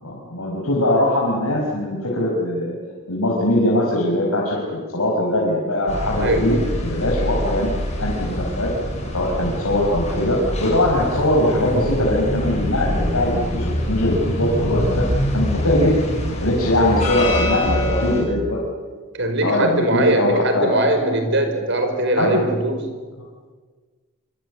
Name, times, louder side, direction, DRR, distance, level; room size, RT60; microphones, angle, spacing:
voice 1, 0.0-2.8 3.1-6.6 6.8-7.7 8.0-8.7 9.1-15.0 15.3-15.9 16.4-18.6 19.4-20.7 22.2-22.4, left 1 dB, 80° left, -3 dB, 5.4 m, -21 dB
sound 1, 5.9-18.2, equal, 30° left, 7.4 m, -25 dB
voice 2, 19.2-22.8, right 1 dB, 55° right, 6 dB, 5.0 m, -20 dB
26.5 x 24.5 x 8.5 m, 1.5 s
head